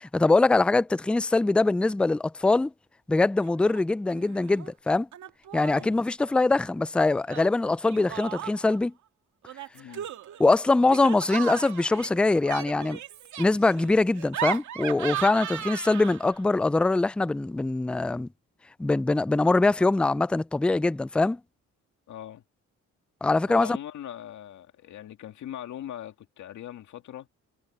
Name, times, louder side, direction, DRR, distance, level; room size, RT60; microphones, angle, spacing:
voice 1, 0.0-2.7 3.1-5.1 5.5-8.9 10.4-13.0 13.4-18.3 18.8-21.4 23.2-23.8, left 3 dB, 5° left, 0.3 m, -23 dB
Laughter, 3.4-3.8 4.1-4.7 5.1-6.0 7.3-8.8 9.4-16.4, right 10 dB, 70° right, 2.5 m, -37 dB
voice 2, 5.7-6.0 9.7-10.1 22.1-22.4 23.5-27.3, left 11 dB, 70° left, 2.7 m, -40 dB
cardioid pair, 90°, 30 cm